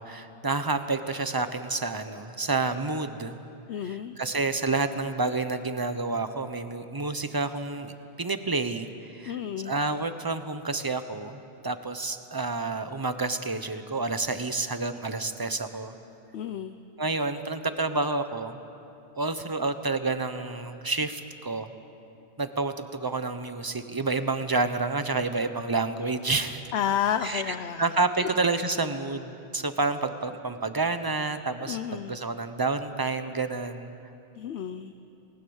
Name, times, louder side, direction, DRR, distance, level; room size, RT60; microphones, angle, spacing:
voice 1, 0.0-3.4 3.8-7.9 8.2-15.9 17.0-18.6 19.2-21.7 22.4-26.6 27.2-33.9, right 3 dB, 20° right, 10 dB, 1.0 m, -29 dB
voice 2, 3.7-4.1 9.3-9.7 16.3-16.7 26.7-27.8 28.2-28.3 31.7-32.2 34.4-34.9, left 9 dB, 75° left, 10 dB, 1.0 m, -30 dB
28.5 x 20.0 x 7.2 m, 2.8 s
omnidirectional pair, 1.1 m